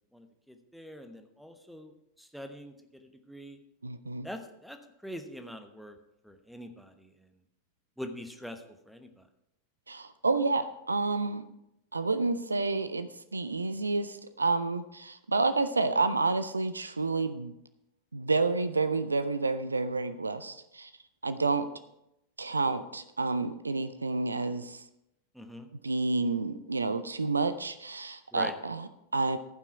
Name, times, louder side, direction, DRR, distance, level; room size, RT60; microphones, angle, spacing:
voice 1, 0.1-1.9 2.2-3.6 4.2-6.0 6.2-7.3 8.0-9.2 25.3-25.7 28.3-28.5, equal, ahead, 5 dB, 1.0 m, -44 dB
voice 2, 3.8-4.3 9.9-11.5 11.9-17.5 18.1-20.9 21.2-21.7 22.4-24.8 25.8-29.4, right 3 dB, 80° right, 12 dB, 0.5 m, -29 dB
15.0 x 6.0 x 4.5 m, 0.83 s
figure-of-eight pair, 90°, 0 cm